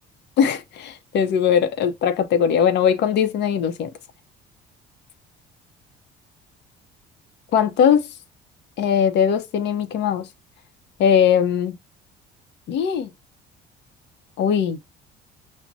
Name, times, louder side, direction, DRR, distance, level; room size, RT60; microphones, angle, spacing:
voice 1, 0.4-3.9 7.5-8.1 8.8-10.3 11.0-11.8 12.7-13.1 14.4-14.8, left 8 dB, 60° left, 0.7 m, -20 dB
6.0 x 2.1 x 2.6 m
cardioid pair, 110°, 20 cm